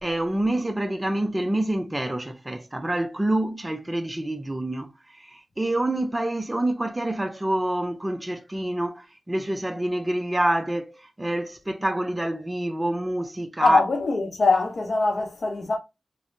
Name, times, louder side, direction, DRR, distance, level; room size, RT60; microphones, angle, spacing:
voice 1, 0.0-4.9 5.1-13.8, right 1 dB, 20° right, 0.4 m, -27 dB
voice 2, 13.6-15.8, left 3 dB, 65° left, 0.6 m, -22 dB
3.1 x 2.0 x 2.5 m
cardioid pair, 65°, 0 cm